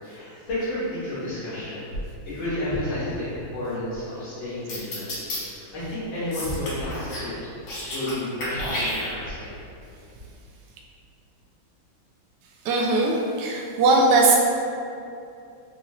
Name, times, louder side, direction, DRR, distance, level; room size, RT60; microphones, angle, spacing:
voice 1, 0.0-1.9 2.3-5.1 5.4-7.5 7.9-9.5, left 1 dB, 75° left, -12 dB, 1.9 m, -31 dB
sound 1, 4.7-5.4 6.3-7.3 7.6-8.1 8.4-9.4, left 1 dB, 90° left, 2.1 m, -31 dB
voice 2, 12.6-14.4, right 2 dB, 70° right, -1 dB, 1.0 m, -19 dB
4.9 x 2.7 x 2.9 m, 2.6 s
omnidirectional pair, 2.2 m